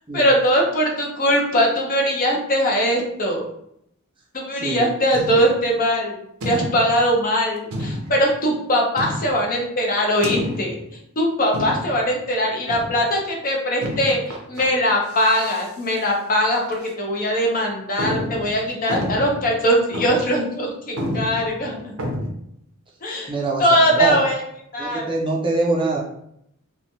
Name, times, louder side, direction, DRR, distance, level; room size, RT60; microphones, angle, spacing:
voice 1, 0.1-3.5 4.3-6.2 6.4-10.8 11.2-22.0 23.0-23.3 23.6-24.4 24.7-25.1, equal, 40° left, -1 dB, 0.6 m, -21 dB
voice 2, 4.6-4.9 23.3-24.2 24.8-26.0, right 3 dB, 25° right, -3 dB, 0.5 m, -23 dB
sound 1, 5.1-5.7 6.4-7.0 7.7-8.3 9.0-9.5 10.2-10.9 11.5-12.1 12.7-13.1 13.8-14.7 15.1-15.7 16.0-16.1 16.7-16.9 17.4-17.5 18.0-19.5 19.9-20.4 20.7-20.8 21.0-22.3, equal, 70° right, 0.6 m, -29 dB
3.1 x 2.2 x 2.6 m, 0.74 s
head